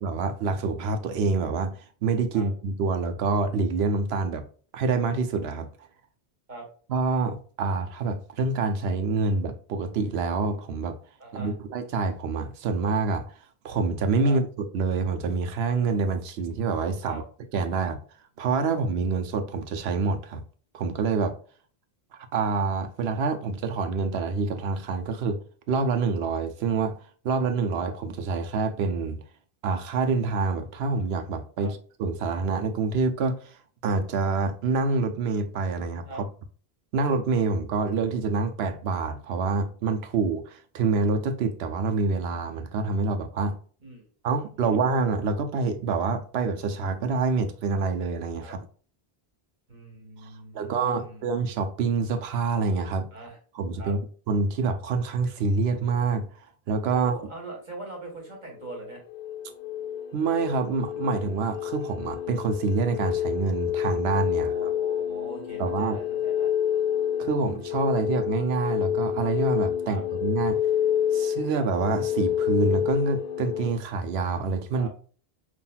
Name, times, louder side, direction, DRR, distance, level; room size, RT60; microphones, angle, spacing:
voice 1, 0.0-4.4 4.7-5.7 6.9-11.0 11.3-13.3 13.6-14.4 14.7-17.2 17.5-18.0 18.4-20.4 20.7-21.3 22.3-25.4 25.7-27.0 27.2-29.2 29.6-33.6 33.8-36.3 36.9-43.6 44.2-48.6 50.5-53.1 53.5-54.0 54.3-56.3 56.7-57.2 60.1-64.7 65.6-66.0 67.2-70.6 71.1-74.9, right 4 dB, 85° right, 0.9 m, -26 dB
voice 2, 11.2-11.5 14.2-14.4 17.0-17.2 31.6-31.7 36.0-36.2 43.8-44.1 44.6-44.8 48.4-48.5 49.7-51.3 53.1-53.4 53.8-53.9 56.9-59.0 64.3-66.5 69.8-70.0 74.7-74.9, right 2 dB, 45° right, 1.5 m, -41 dB
sound 1, 58.6-73.8, left 10 dB, 55° left, 0.5 m, -28 dB
5.6 x 2.5 x 2.3 m
omnidirectional pair, 1.0 m